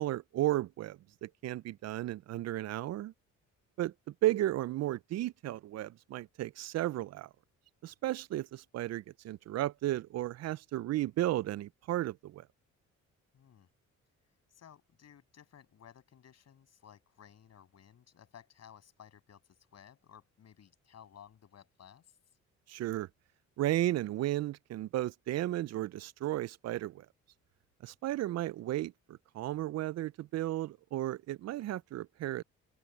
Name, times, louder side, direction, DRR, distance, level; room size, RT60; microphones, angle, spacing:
voice 1, 0.0-3.1 3.8-7.3 7.8-12.5 22.7-23.1 23.6-27.1 27.8-32.4, right 14 dB, 60° right, 0.4 m, -34 dB
voice 2, 13.3-13.7 14.5-22.2, left 9 dB, 60° left, 7.4 m, -57 dB
open air
cardioid pair, 90°, 30 cm